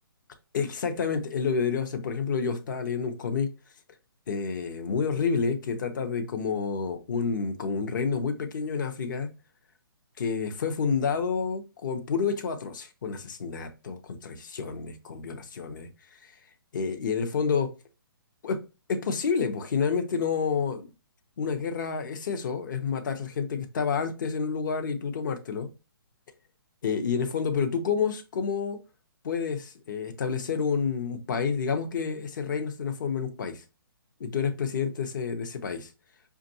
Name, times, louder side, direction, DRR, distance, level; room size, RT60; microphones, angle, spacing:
voice 1, 0.5-3.5 4.3-9.3 10.2-15.9 16.2-16.3 16.7-17.7 18.4-18.6 18.9-20.9 21.4-25.7 26.8-28.8 29.2-33.6 34.2-35.9, left 5 dB, 55° left, 0.7 m, -29 dB
5.3 x 2.4 x 2.6 m
hypercardioid pair, 155°, 13 cm